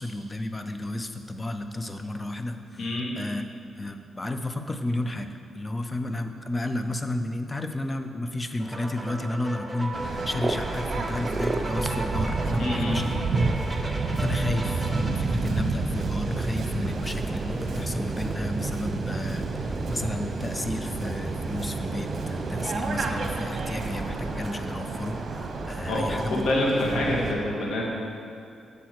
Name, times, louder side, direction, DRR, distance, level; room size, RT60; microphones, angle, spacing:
voice 1, 0.0-2.9 3.2-3.4 3.8-13.2 13.8-26.5, left 1 dB, 25° left, 7 dB, 0.6 m, -32 dB
voice 2, 2.8-3.1 12.6-13.0 25.9-27.8, left 1 dB, 80° left, -3 dB, 1.9 m, -26 dB
sound 1, 8.6-15.1, right 1 dB, 10° right, 0.9 m, -36 dB
Waves surf, 9.9-27.3, right 3 dB, 55° right, 1.0 m, -30 dB
sound 2, 10.4-22.8, right 2 dB, 30° right, 0.4 m, -37 dB
8.8 x 6.9 x 4.7 m, 2.5 s
cardioid pair, 85°, 0 cm